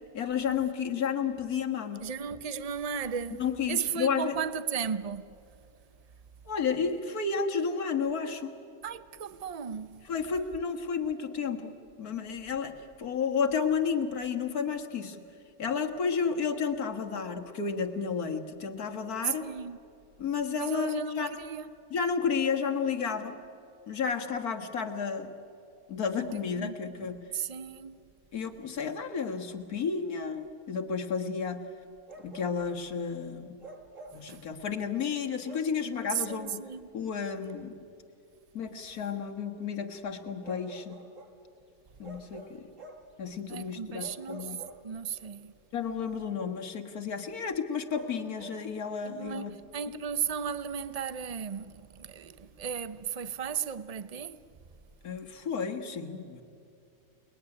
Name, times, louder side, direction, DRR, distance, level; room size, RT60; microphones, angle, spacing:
voice 1, 0.1-2.0 3.4-4.4 6.5-8.5 10.1-15.2 15.6-19.5 20.2-21.4 21.9-23.4 23.9-25.3 25.9-27.2 28.3-31.7 32.2-33.6 34.1-36.6 36.9-37.8 38.5-41.0 42.0-42.7 43.2-44.6 45.7-49.5 55.0-56.4, left 6 dB, 75° left, 2.1 m, -32 dB
voice 2, 2.0-5.4 8.8-10.0 19.2-19.8 20.6-21.6 26.2-28.0 34.1-34.4 36.1-36.9 43.5-44.6 44.8-45.5 49.0-54.4, right 7 dB, 40° right, 0.6 m, -35 dB
Bark, 32.1-32.8 33.6-34.3 35.4-35.8 37.5-37.6 40.4-41.4 42.0-43.1 44.0-45.3 47.9-48.7, right 2 dB, 55° right, 2.6 m, -48 dB
29.0 x 20.5 x 9.9 m
omnidirectional pair, 1.6 m